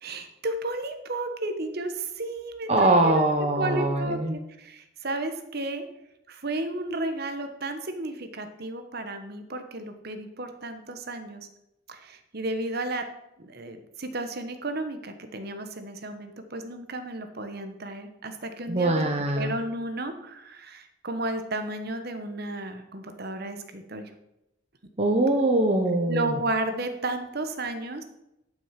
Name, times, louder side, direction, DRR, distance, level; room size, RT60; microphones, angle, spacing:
voice 1, 0.0-5.8 6.3-11.5 11.9-13.0 13.4-24.1 26.1-28.0, right 2 dB, 50° right, 8 dB, 1.2 m, -33 dB
voice 2, 2.7-4.4 18.7-19.6 25.0-26.3, right 2 dB, 30° right, 3 dB, 0.9 m, -23 dB
11.0 x 6.3 x 5.8 m, 0.86 s
head